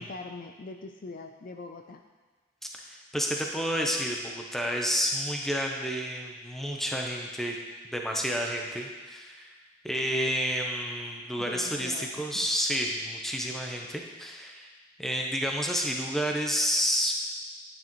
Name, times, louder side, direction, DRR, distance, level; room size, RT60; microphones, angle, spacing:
voice 1, 0.0-2.0 11.4-12.5, left 3 dB, 45° left, 5 dB, 0.4 m, -42 dB
voice 2, 2.9-7.6 7.9-9.5 9.8-14.7 15.0-17.1, equal, ahead, 0 dB, 0.8 m, -30 dB
9.6 x 8.7 x 3.1 m, 1.3 s
head